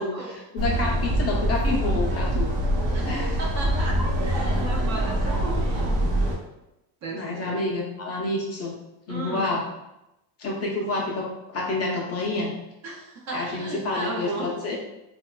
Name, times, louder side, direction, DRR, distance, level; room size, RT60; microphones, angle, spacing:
voice 1, 0.0-0.4 2.9-6.1 7.0-7.6 9.1-9.5 12.8-14.5, right 2 dB, 40° right, -1 dB, 0.4 m, -35 dB
voice 2, 0.5-2.5 3.0-3.4 7.1-8.7 9.1-9.6 10.4-11.2 11.5-12.5 13.3-14.7, left 2 dB, 35° left, -2 dB, 0.4 m, -28 dB
sound 1, 0.6-6.4, right 1 dB, 70° right, 0.9 m, -24 dB
2.9 x 2.2 x 2.2 m, 0.92 s
cardioid pair, 135°, 46 cm